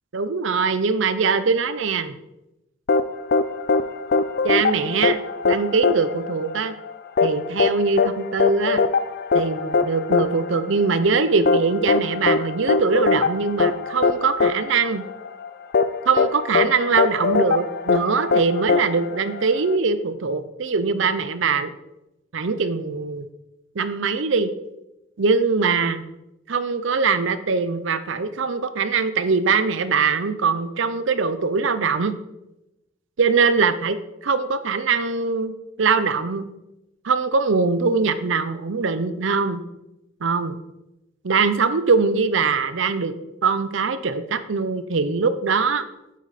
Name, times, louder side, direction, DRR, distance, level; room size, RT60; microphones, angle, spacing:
voice 1, 0.1-2.1 4.4-5.2 5.4-6.7 7.2-8.8 9.3-15.0 16.1-21.7 22.3-23.3 23.8-24.5 25.2-26.0 26.5-32.1 33.2-34.0 34.2-35.5 35.8-36.4 37.0-39.6 40.2-40.6 41.2-43.1 43.4-45.9, right 4 dB, 70° right, 12 dB, 0.6 m, -22 dB
sound 1, 2.9-19.8, left 4 dB, 50° left, 0.5 m, -22 dB
9.4 x 8.3 x 4.1 m, 0.93 s
head